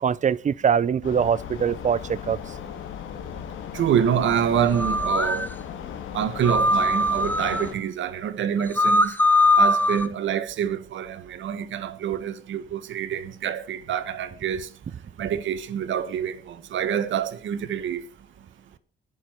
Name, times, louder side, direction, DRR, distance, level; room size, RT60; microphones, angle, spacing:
voice 1, 0.0-2.4, right 7 dB, 40° right, 0.7 m, -23 dB
sound 1, 1.0-7.7, left 8 dB, 80° left, 2.0 m, -36 dB
voice 2, 3.7-5.5 6.1-9.1 9.6-14.7 15.2-18.0, right 9 dB, 75° right, 1.4 m, -26 dB
sound 2, 4.7-5.5 6.4-7.6 8.6-10.1, left 1 dB, 10° left, 1.2 m, -20 dB
20.0 x 6.8 x 4.6 m
cardioid pair, 90°, 20 cm